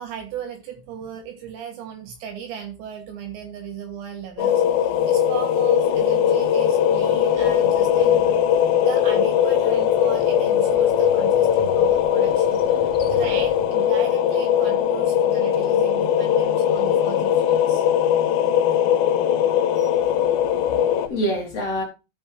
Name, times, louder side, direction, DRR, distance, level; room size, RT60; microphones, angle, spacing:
voice 1, 0.0-8.4 8.8-17.8 18.7-18.8 19.8-19.9, right 8 dB, 70° right, 3.4 m, -36 dB
sound 1, 4.4-21.1, left 9 dB, 85° left, 3.6 m, -20 dB
Motorcycle, 7.8-16.1, equal, 15° left, 3.0 m, -45 dB
voice 2, 20.0-21.8, equal, 50° left, 2.1 m, -28 dB
13.5 x 5.3 x 3.1 m
omnidirectional pair, 5.7 m